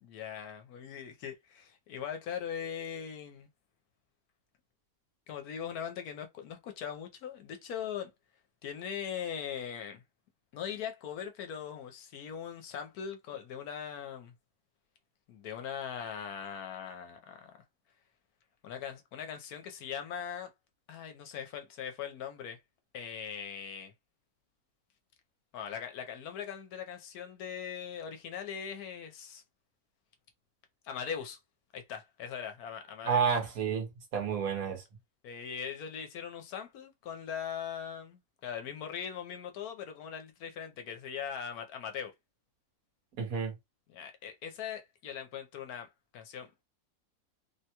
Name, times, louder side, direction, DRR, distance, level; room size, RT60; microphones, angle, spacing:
voice 1, 0.0-3.5 5.3-8.1 8.6-10.0 10.5-14.3 15.3-17.5 18.6-20.5 20.9-22.6 22.9-23.9 25.5-29.4 30.8-31.4 31.7-33.3 35.2-42.1 43.9-46.6, left 8 dB, 85° left, 1.2 m, -40 dB
voice 2, 33.0-34.8 43.2-43.5, right 6 dB, 70° right, 1.4 m, -30 dB
3.3 x 2.2 x 2.8 m
omnidirectional pair, 1.6 m